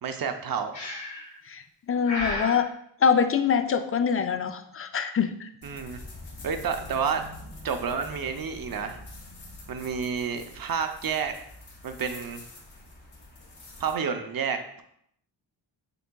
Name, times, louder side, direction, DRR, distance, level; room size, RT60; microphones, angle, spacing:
voice 1, 0.0-0.8 5.6-6.0 6.4-7.2 7.6-9.0 9.7-11.3 11.8-12.4 13.8-14.8, right 6 dB, 50° right, 7 dB, 0.6 m, -30 dB
Breathing, 0.7-1.3 2.0-2.6, left 1 dB, 85° left, 1.9 m, -33 dB
voice 2, 1.9-2.7 3.0-5.5, left 6 dB, 30° left, 8 dB, 0.4 m, -24 dB
sound 1, 5.6-14.0, left 2 dB, 55° left, 1.6 m, -45 dB
6.8 x 3.4 x 2.3 m, 0.71 s
cardioid pair, 90°, 45 cm